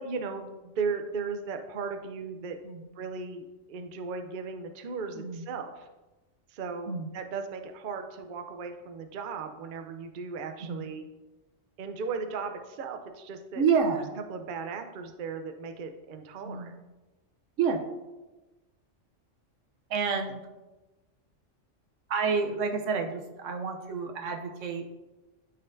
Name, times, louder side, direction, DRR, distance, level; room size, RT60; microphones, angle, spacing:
voice 1, 0.0-2.6 3.0-5.9 6.5-11.0 11.8-13.6 14.3-16.7, right 5 dB, 55° right, 6 dB, 0.7 m, -36 dB
voice 2, 5.1-5.5 6.9-7.1 10.6-10.8 13.5-14.1 16.4-16.7 17.6-17.8 19.9-20.4 22.1-24.9, right 5 dB, 90° right, 4 dB, 1.1 m, -29 dB
12.0 x 4.2 x 2.6 m, 1.1 s
omnidirectional pair, 1.2 m